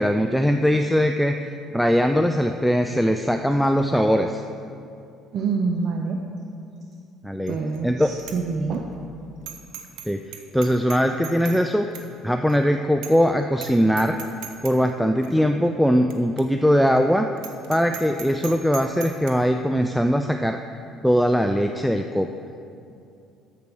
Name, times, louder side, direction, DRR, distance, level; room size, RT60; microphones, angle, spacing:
voice 1, 0.0-1.4 1.7-4.4 7.2-7.6 7.8-8.1 10.1-10.2 10.5-11.9 12.2-14.2 14.6-17.3 17.7-20.6 21.0-22.3, equal, ahead, 5 dB, 0.4 m, -20 dB
voice 2, 5.3-6.2 7.5-8.9, right 4 dB, 55° right, 2 dB, 0.7 m, -26 dB
Bicycle bell, 7.5-7.8 8.2-8.4 8.7-8.8 9.5-10.1 10.3-11.6 11.9-12.1 12.5-12.6 13.0-13.3 13.5-13.7 14.0-14.7 15.2-15.3 16.1-16.2 16.4-16.5 16.9-17.0 17.4-19.3, right 9 dB, 85° right, 0.9 m, -38 dB
8.9 x 7.7 x 6.1 m, 2.5 s
cardioid pair, 100°, 0 cm